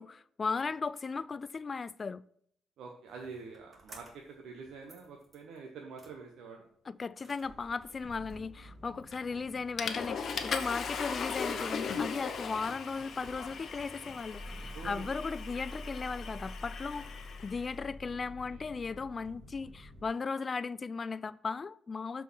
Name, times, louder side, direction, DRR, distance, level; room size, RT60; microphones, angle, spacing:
voice 1, 0.0-2.2 6.9-17.1 17.4-22.2, left 4 dB, 35° left, 0.3 m, -36 dB
voice 2, 2.8-6.7 14.7-15.9 18.1-18.2 18.5-18.6, right 4 dB, 75° right, 1.0 m, -47 dB
sound 1, 3.1-4.4 4.6-5.6 6.0-6.1 7.1-20.0, equal, 35° right, 1.9 m, -49 dB
Water / Toilet flush, 9.1-9.4 9.8-17.6, left 6 dB, 55° left, 0.9 m, -38 dB
6.9 x 4.6 x 6.1 m
cardioid pair, 90°, 0 cm